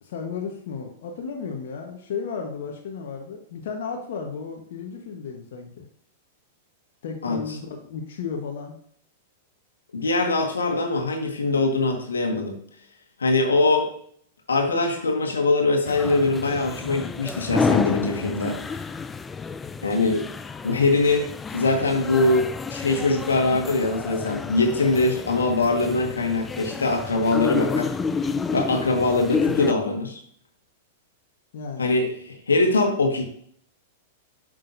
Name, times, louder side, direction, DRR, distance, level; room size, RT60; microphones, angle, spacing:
voice 1, 0.0-5.8 7.0-8.8 31.5-31.8, left 5 dB, 65° left, 2 dB, 1.1 m, -34 dB
voice 2, 9.9-12.6 13.2-13.9 14.5-18.6 19.8-20.2 20.6-27.9 28.5-30.2 31.8-33.2, left 3 dB, 90° left, 3 dB, 1.4 m, -22 dB
sound 1, 15.9-29.7, left 5 dB, 15° left, 0.4 m, -30 dB
7.6 x 6.3 x 2.6 m, 0.63 s
hypercardioid pair, 110°, 0 cm